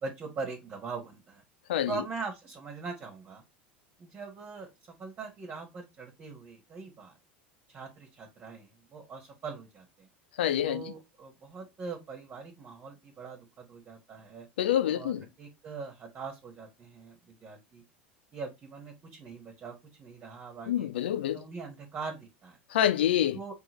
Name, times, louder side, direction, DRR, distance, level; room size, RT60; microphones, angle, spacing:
voice 1, 0.0-1.4 1.9-3.4 4.0-7.2 7.7-10.1 10.6-14.5 14.9-17.8 18.3-20.9 21.3-22.6 23.3-23.5, right 4 dB, 35° right, 1.5 m, -42 dB
voice 2, 10.4-10.8 14.6-15.3 20.7-21.4 22.7-23.4, left 11 dB, 75° left, 0.5 m, -26 dB
4.6 x 3.5 x 3.0 m
hypercardioid pair, 85°, 6 cm